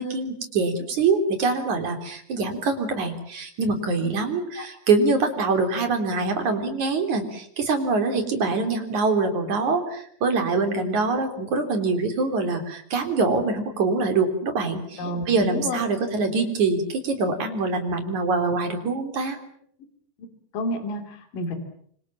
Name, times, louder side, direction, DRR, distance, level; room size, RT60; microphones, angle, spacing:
voice 1, 0.0-19.4, right 3 dB, 50° right, 6 dB, 4.7 m, -24 dB
voice 2, 15.0-15.8 20.2-21.6, left 1 dB, 55° left, 6 dB, 4.4 m, -30 dB
27.0 x 25.5 x 7.5 m, 0.64 s
omnidirectional pair, 4.7 m